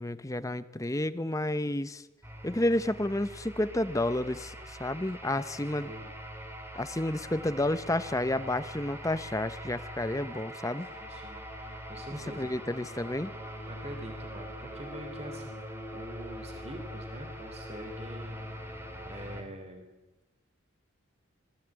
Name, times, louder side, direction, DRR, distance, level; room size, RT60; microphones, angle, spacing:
voice 1, 0.0-2.1 2.4-5.9 6.7-10.9 12.1-13.3, left 1 dB, 15° left, 13 dB, 0.8 m, -31 dB
sound 1, 2.2-19.4, equal, 10° right, 3.2 m, -43 dB
voice 2, 11.0-12.5 13.7-15.7 15.9-18.6 19.1-19.9, equal, 30° right, 5 dB, 3.1 m, -45 dB
27.0 x 19.0 x 9.0 m, 1.1 s
head